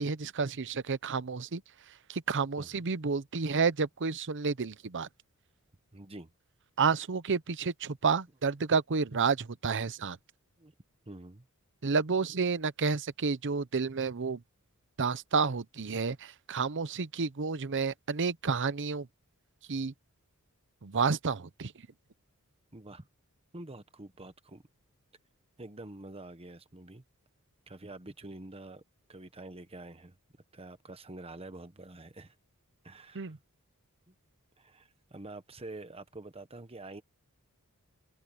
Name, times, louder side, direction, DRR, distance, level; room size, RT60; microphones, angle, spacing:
voice 1, 0.0-1.6 2.1-5.1 6.8-10.2 11.8-14.4 15.0-19.1 19.7-19.9 20.8-21.7 33.1-33.4, right 5 dB, 55° right, 0.8 m, -30 dB
voice 2, 5.9-6.3 10.6-10.7 11.1-11.4 22.7-23.1 23.5-24.6 25.6-27.0 27.7-28.8 29.1-30.2 30.5-32.3 32.8-33.3 34.1-34.2 34.6-37.0, right 2 dB, 25° right, 1.3 m, -47 dB
head